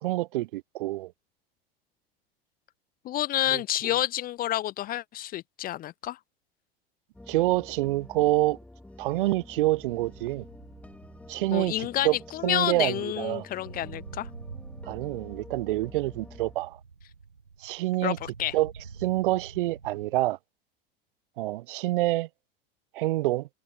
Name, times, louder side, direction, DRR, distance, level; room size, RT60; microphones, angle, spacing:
voice 1, 0.0-1.1 3.5-3.6 7.3-8.6 9.0-10.4 11.3-12.2 12.4-13.4 14.9-16.8 17.6-18.2 18.5-18.7 19.0-20.4 21.4-22.3 22.9-23.5, right 17 dB, 60° right, 0.7 m, -27 dB
voice 2, 3.0-6.2 11.5-14.3 18.0-18.5, left 13 dB, 30° left, 0.6 m, -29 dB
sound 1, 7.1-16.6, left 1 dB, 5° left, 2.4 m, -48 dB
sound 2, 10.0-20.3, right 5 dB, 85° right, 5.2 m, -47 dB
figure-of-eight pair, 80°, 29 cm